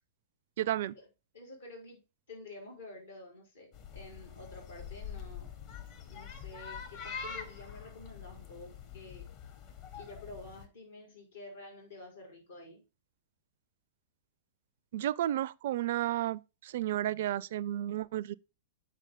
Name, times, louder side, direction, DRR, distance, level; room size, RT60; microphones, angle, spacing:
voice 1, 0.6-0.9 14.9-18.3, right 13 dB, 55° right, 0.4 m, -32 dB
voice 2, 1.3-5.5 6.1-9.3 9.9-12.8, left 2 dB, 75° left, 4.3 m, -50 dB
sound 1, 3.7-10.7, left 7 dB, 45° left, 1.6 m, -45 dB
7.6 x 6.3 x 3.7 m
figure-of-eight pair, 105°, 0 cm